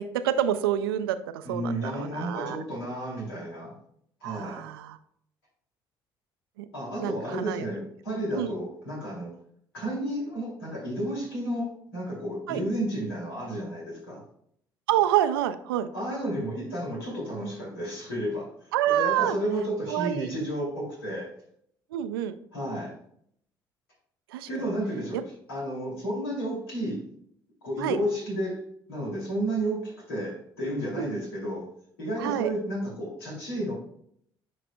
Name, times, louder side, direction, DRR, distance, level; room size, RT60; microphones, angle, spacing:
voice 1, 0.0-2.6 4.2-5.0 6.6-6.7 7.0-7.7 8.3-8.5 12.5-12.6 14.9-15.9 18.7-19.4 19.9-20.3 21.9-22.3 24.3-24.5 27.8-28.0 31.0-31.2 32.2-32.5, right 11 dB, 75° right, 12 dB, 0.4 m, -27 dB
voice 2, 1.4-3.7 4.2-4.6 6.7-9.3 9.7-14.2 15.9-21.3 22.5-22.9 24.5-27.0 27.6-28.6 28.9-31.7 32.0-33.7, right 1 dB, 80° left, -4 dB, 2.7 m, -32 dB
10.0 x 4.9 x 2.3 m, 0.68 s
figure-of-eight pair, 50°, 12 cm